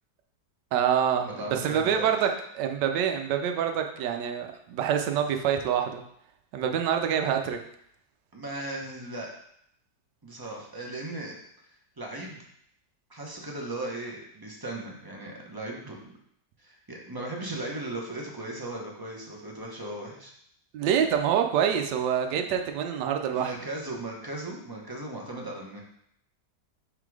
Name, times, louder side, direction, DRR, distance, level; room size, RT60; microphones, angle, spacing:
voice 1, 0.7-2.3 2.5-6.0 6.5-7.6 20.7-23.5, right 8 dB, 80° right, 5 dB, 1.3 m, -26 dB
voice 2, 1.2-2.1 8.3-9.3 10.2-11.4 11.7-12.4 13.1-16.1 16.6-20.3 23.3-25.8, right 2 dB, 20° right, -1 dB, 0.7 m, -37 dB
5.8 x 3.8 x 4.7 m, 0.70 s
omnidirectional pair, 1.8 m